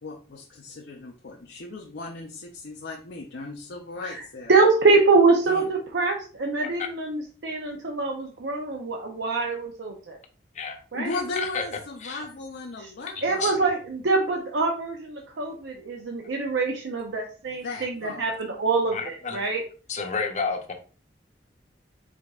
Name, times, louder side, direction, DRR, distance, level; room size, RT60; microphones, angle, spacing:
voice 1, 0.0-4.5 5.5-5.7 10.9-13.7 17.5-18.3, left 2 dB, 80° left, 0 dB, 0.6 m, -37 dB
voice 2, 4.5-10.2 10.9-11.1 13.2-19.6, right 3 dB, 85° right, 0 dB, 0.6 m, -24 dB
voice 3, 11.1-11.6 12.0-12.2 13.4-13.5 18.9-19.4 19.9-20.7, left 5 dB, 40° left, 5 dB, 0.7 m, -30 dB
5.0 x 4.0 x 2.4 m, 0.38 s
head